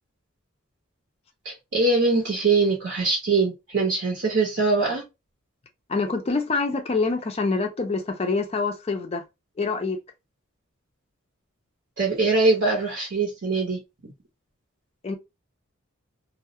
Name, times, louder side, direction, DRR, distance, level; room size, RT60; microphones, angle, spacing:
voice 1, 1.4-5.0 12.0-13.8, right 3 dB, 60° right, 0.7 m, -22 dB
voice 2, 5.9-9.2 9.6-10.0 15.0-15.2, left 3 dB, 30° left, 0.4 m, -26 dB
2.3 x 2.0 x 2.6 m
head